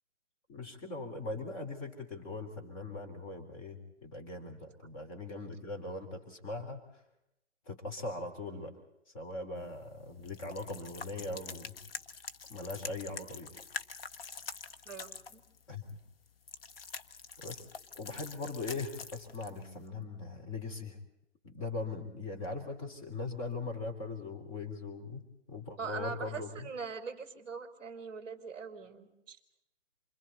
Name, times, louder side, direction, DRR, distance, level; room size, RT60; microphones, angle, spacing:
voice 1, 0.5-7.0 7.6-8.8 9.1-11.8 12.5-13.5 15.7-16.0 17.4-17.7 17.9-21.0 21.4-26.7, left 3 dB, 25° left, 1 dB, 3.3 m, -40 dB
sound 1, 9.6-19.9, left 5 dB, 50° left, 1.1 m, -46 dB
voice 2, 14.8-15.4 25.8-29.4, right 5 dB, 15° right, 4 dB, 3.1 m, -42 dB
28.5 x 25.5 x 4.2 m, 0.84 s
hypercardioid pair, 160°, 37 cm